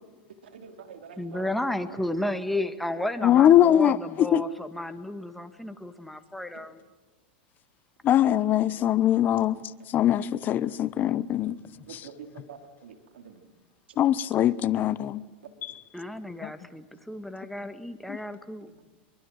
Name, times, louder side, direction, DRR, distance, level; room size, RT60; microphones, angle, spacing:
voice 1, 0.5-1.5 11.9-13.4, right 6 dB, 90° right, 3.7 m, -45 dB
voice 2, 1.2-6.8 15.9-18.7, left 1 dB, ahead, 1.7 m, -33 dB
voice 3, 3.2-4.4 8.0-9.6 9.9-11.6 11.9-12.1 14.0-15.2 15.6-15.8 16.4-16.5 18.1-18.2, left 11 dB, 35° left, 0.9 m, -22 dB
25.0 x 23.5 x 7.8 m
supercardioid pair, 125°, 6 cm